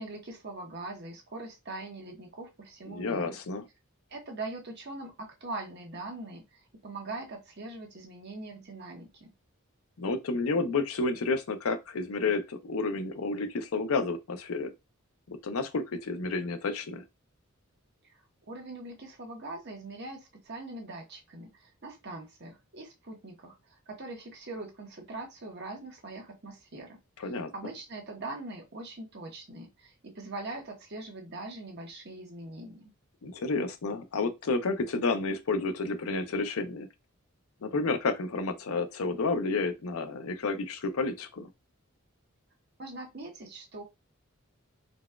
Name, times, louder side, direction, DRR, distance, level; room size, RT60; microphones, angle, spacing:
voice 1, 0.0-3.3 4.1-9.3 18.5-32.9 42.8-43.8, right 2 dB, 50° right, 0.9 m, -42 dB
voice 2, 2.9-3.6 10.0-14.7 15.3-17.0 27.2-27.5 33.2-36.9 37.6-41.5, left 3 dB, 85° left, 0.6 m, -30 dB
4.0 x 2.3 x 2.3 m
head